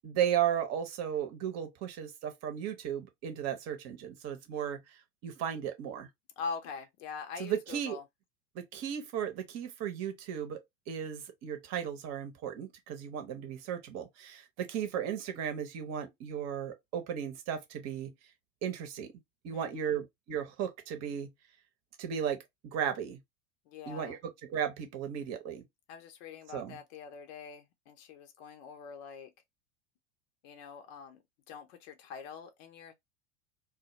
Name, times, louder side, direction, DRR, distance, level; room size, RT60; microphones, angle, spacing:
voice 1, 0.0-6.1 7.4-8.0 8.5-18.1 18.6-19.1 19.4-21.3 22.0-23.2 23.9-25.6 26.5-26.8, right 9 dB, 40° right, 0.8 m, -35 dB
voice 2, 6.4-8.0 19.5-20.0 23.7-24.2 25.9-29.3 30.4-31.2 31.5-32.9, left 5 dB, 50° left, 0.6 m, -44 dB
2.2 x 2.1 x 2.8 m
hypercardioid pair, 90°, 39 cm